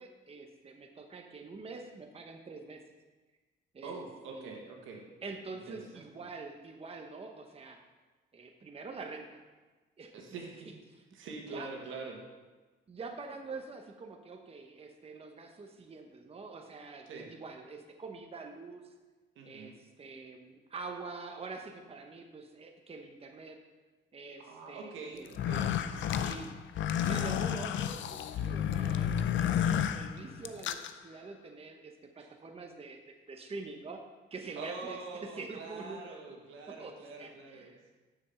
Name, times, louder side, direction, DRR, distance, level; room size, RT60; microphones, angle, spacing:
voice 1, 0.0-2.8 3.7-4.0 4.3-4.6 5.2-7.8 8.3-9.4 10.0-10.1 11.5-11.7 12.9-18.8 19.4-23.6 24.1-25.3 26.1-26.5 27.1-33.0 33.3-34.0 34.3-36.2 36.7-37.9, right 3 dB, 30° right, 3 dB, 1.0 m, -45 dB
voice 2, 3.8-5.0 5.7-6.1 10.1-10.8 11.1-12.2 17.1-17.3 19.4-19.8 24.4-26.4 32.2-32.3 34.6-37.9, right 4 dB, 85° right, 0 dB, 1.8 m, -45 dB
sound 1, 25.3-30.9, left 9 dB, 75° left, 0.5 m, -31 dB
7.1 x 6.9 x 5.7 m, 1.3 s
cardioid pair, 90°, 20 cm